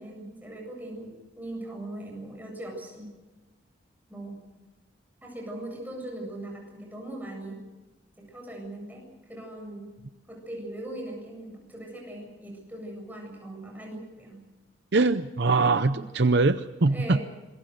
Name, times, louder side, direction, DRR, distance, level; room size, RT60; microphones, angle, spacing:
voice 1, 0.0-3.1 4.1-4.4 5.2-7.6 8.2-9.9 10.3-14.4 15.9-16.0 16.9-17.2, right 1 dB, 10° right, 0 dB, 8.0 m, -40 dB
voice 2, 14.9-17.2, right 3 dB, 55° right, 11 dB, 0.7 m, -22 dB
26.5 x 22.5 x 6.6 m, 1.1 s
head